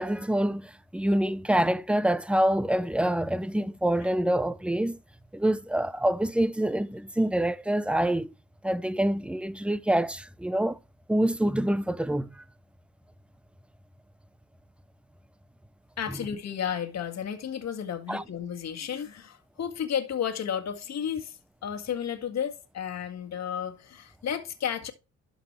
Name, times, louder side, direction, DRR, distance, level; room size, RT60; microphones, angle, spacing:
voice 1, 0.0-5.0 5.3-8.3 8.6-10.8 11.1-12.3 18.1-18.2, right 1 dB, 5° right, 0.7 m, -26 dB
voice 2, 16.0-24.9, left 8 dB, 60° left, 1.9 m, -33 dB
12.5 x 4.9 x 3.2 m
cardioid pair, 90°, 30 cm